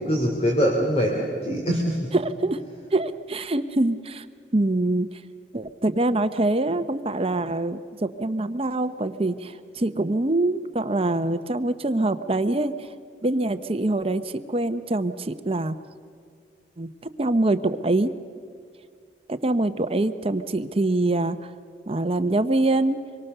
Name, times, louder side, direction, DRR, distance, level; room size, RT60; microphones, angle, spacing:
voice 1, 0.0-2.1, equal, 35° left, 0 dB, 2.9 m, -23 dB
voice 2, 2.1-2.6 2.9-4.2 4.5-5.2 5.5-12.7 13.2-15.8 16.8-16.9 17.2-18.1 19.3-21.4 21.9-23.0, right 2 dB, 35° right, 10 dB, 0.9 m, -24 dB
26.0 x 23.0 x 6.8 m, 2.3 s
head